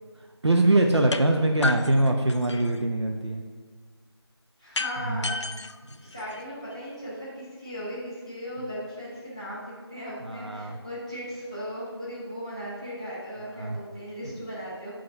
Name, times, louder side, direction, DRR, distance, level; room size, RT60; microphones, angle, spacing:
voice 1, 0.4-3.4 5.0-5.3 10.2-10.8 13.5-13.8, right 2 dB, 75° right, 3 dB, 0.7 m, -23 dB
sound 1, 1.1-1.2 1.6-2.8 4.7-6.7, left 3 dB, 85° left, 0.5 m, -32 dB
voice 2, 4.6-15.0, equal, 10° right, -10 dB, 1.0 m, -37 dB
5.5 x 5.1 x 6.0 m, 1.5 s
figure-of-eight pair, 180°, 14 cm